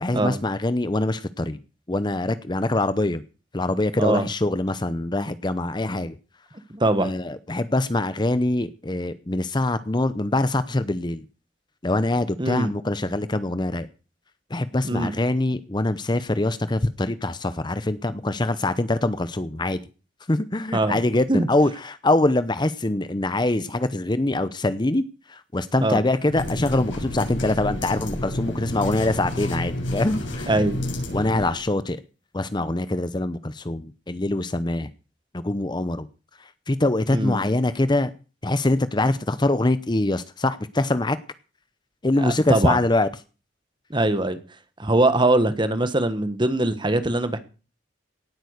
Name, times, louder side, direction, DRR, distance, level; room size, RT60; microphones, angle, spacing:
voice 1, 0.0-1.6 1.9-3.2 3.5-6.2 7.0-11.2 11.8-13.9 14.5-19.8 20.3-25.0 25.3-30.5 31.1-32.0 32.3-34.9 35.3-36.1 36.7-38.1 38.4-41.2 42.0-43.1, left 2 dB, 25° left, 13 dB, 0.7 m, -24 dB
voice 2, 6.7-7.1 12.4-12.7 14.8-15.1 20.7-20.9 21.3-21.5 25.8-26.0 30.5-30.8 37.1-37.4 42.2-42.8 43.9-44.4 44.8-47.4, right 2 dB, 25° right, 11 dB, 1.5 m, -22 dB
sound 1, 26.2-31.6, left 1 dB, 75° left, 7.0 m, -30 dB
18.0 x 8.9 x 6.6 m, 0.35 s
head